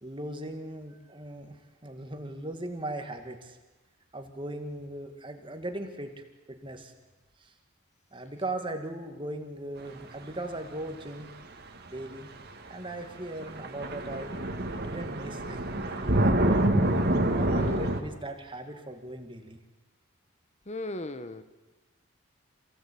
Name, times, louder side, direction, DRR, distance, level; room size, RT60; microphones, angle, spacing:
voice 1, 0.0-3.6 4.1-6.9 7.4-7.5 8.1-11.3 11.9-12.3 12.7-14.4 14.8-16.3 17.3-19.6, right 1 dB, 25° right, 5 dB, 2.0 m, -39 dB
sound 1, 11.9-12.0 13.1-13.2 13.4-18.0, right 1 dB, 50° right, 2.3 m, -26 dB
voice 2, 17.5-18.2 20.7-21.4, left 2 dB, 30° left, 11 dB, 1.3 m, -37 dB
28.0 x 16.5 x 8.6 m, 1.2 s
head